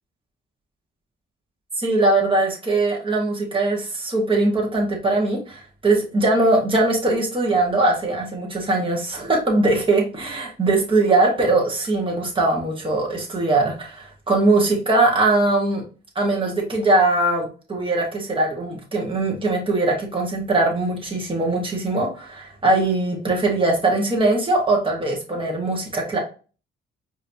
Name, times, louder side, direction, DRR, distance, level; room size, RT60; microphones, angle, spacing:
voice 1, 1.8-15.8 16.2-26.2, right 2 dB, 25° right, -1 dB, 1.9 m, -21 dB
4.8 x 3.0 x 2.8 m, 0.35 s
cardioid pair, 90°, 20 cm